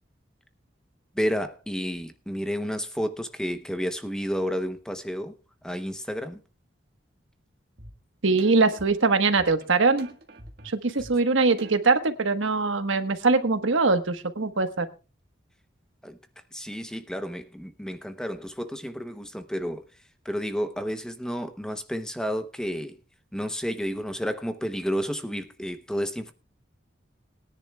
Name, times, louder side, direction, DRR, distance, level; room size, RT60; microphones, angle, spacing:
voice 1, 1.1-5.4 5.6-6.4 16.0-16.2 16.5-19.9 20.2-23.0 23.3-26.3, equal, 5° left, 8 dB, 0.8 m, -31 dB
sound 1, 7.8-7.9 8.4-12.0, right 1 dB, 50° right, 1.6 m, -46 dB
voice 2, 8.2-10.1 10.6-14.9, right 3 dB, 85° right, 8 dB, 1.2 m, -22 dB
21.5 x 10.0 x 2.3 m, 0.32 s
head